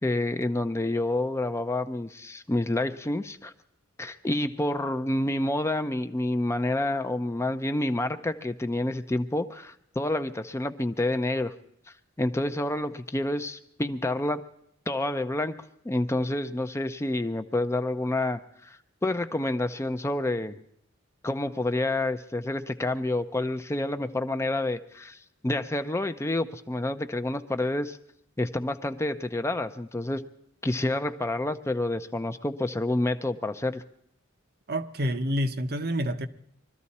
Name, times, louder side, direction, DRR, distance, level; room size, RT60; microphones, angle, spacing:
voice 1, 0.0-3.5 4.0-11.5 12.2-14.4 14.9-20.5 21.2-25.2 25.4-28.0 28.4-30.2 30.6-33.8, left 1 dB, 15° left, 0.5 m, -28 dB
voice 2, 34.7-36.3, equal, 50° right, 0.8 m, -28 dB
22.0 x 13.5 x 4.2 m
head